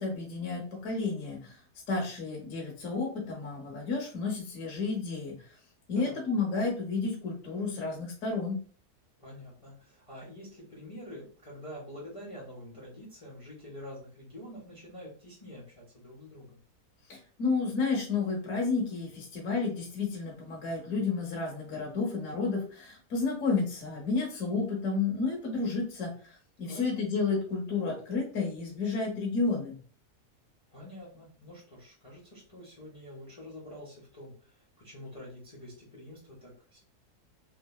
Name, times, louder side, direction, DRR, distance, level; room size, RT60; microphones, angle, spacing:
voice 1, 0.0-1.6 1.9-5.4 5.9-8.6 17.1-29.8, left 4 dB, 60° left, -1 dB, 1.0 m, -31 dB
voice 2, 9.2-16.6 26.7-27.0 30.7-36.8, equal, 40° left, -5 dB, 0.5 m, -47 dB
3.0 x 2.3 x 2.2 m, 0.41 s
omnidirectional pair, 1.7 m